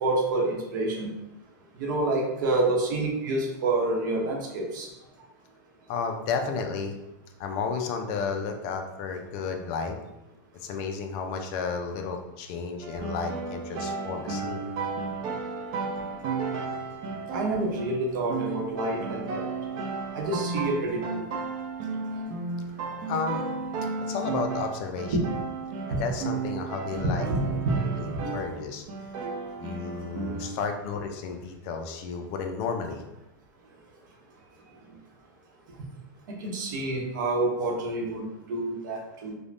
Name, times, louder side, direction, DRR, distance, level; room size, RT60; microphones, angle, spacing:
voice 1, 0.0-1.1 1.8-4.9 17.3-19.5 20.1-21.2 25.1-25.2 25.9-26.0 27.0-27.9 36.3-39.4, right 2 dB, 65° right, 0 dB, 0.8 m, -28 dB
voice 2, 5.9-7.0 7.4-10.0 10.6-14.7 23.0-23.5 24.0-25.2 25.9-28.8 29.6-33.0, left 5 dB, 45° left, 5 dB, 0.4 m, -32 dB
sound 1, 12.8-28.6 28.9-30.6, right 4 dB, 40° right, 0.5 m, -34 dB
3.2 x 2.1 x 2.5 m, 0.91 s
supercardioid pair, 140°, 11 cm